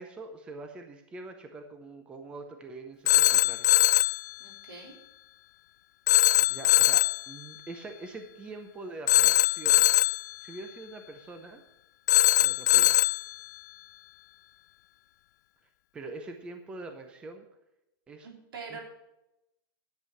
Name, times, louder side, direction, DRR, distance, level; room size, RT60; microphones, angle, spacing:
voice 1, 0.0-3.7 6.4-9.9 10.4-11.6 12.4-13.0 15.9-17.4 18.1-18.3 18.7-18.8, right 2 dB, 10° right, 6 dB, 0.6 m, -44 dB
Telephone, 3.1-4.2 6.1-7.2 9.1-10.2 12.1-13.2, left 14 dB, 50° left, 0.3 m, -21 dB
voice 2, 4.4-5.0 18.2-18.8, right 4 dB, 80° right, 1 dB, 3.9 m, -44 dB
11.0 x 7.6 x 6.4 m, 0.90 s
supercardioid pair, 170°, 12 cm